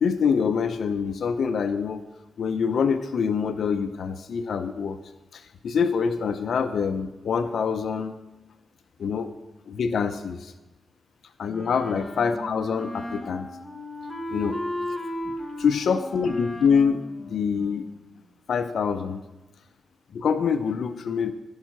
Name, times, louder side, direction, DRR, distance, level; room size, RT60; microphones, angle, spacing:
voice 1, 0.0-2.0 2.4-5.0 5.3-8.1 9.0-9.3 9.7-10.5 11.4-13.5 14.3-14.6 15.3-15.4 15.6-17.9 18.5-19.2 20.1-21.3, left 6 dB, 70° left, 9 dB, 0.6 m, -25 dB
Wind instrument woodwind instrument, 11.5-18.1, left 1 dB, 10° left, 1.3 m, -35 dB
15.5 x 5.6 x 6.0 m, 1.1 s
wide cardioid pair, 120°, 0 cm